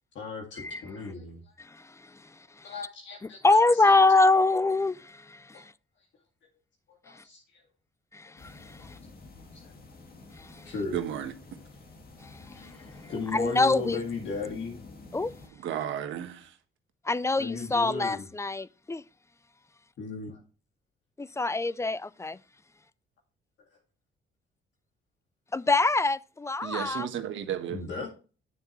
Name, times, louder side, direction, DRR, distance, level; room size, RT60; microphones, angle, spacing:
voice 1, 0.1-1.4 2.6-3.9 5.5-5.6 6.9-7.6 9.5-9.7 10.7-11.0 12.5-14.8 17.4-18.3 20.0-20.4 27.7-28.1, left 4 dB, 65° left, 2.1 m, -36 dB
voice 2, 3.4-5.6 8.1-8.9 10.4-10.5 13.3-14.0 15.1-15.3 17.1-19.0 21.2-22.4 25.5-27.1, left 3 dB, 15° left, 0.3 m, -24 dB
sound 1, 8.4-15.5, left 3 dB, 50° left, 2.0 m, -49 dB
voice 3, 10.9-11.3 15.6-16.5 26.6-27.8, right 9 dB, 75° right, 1.3 m, -33 dB
9.3 x 7.0 x 3.1 m
cardioid pair, 90°, 20 cm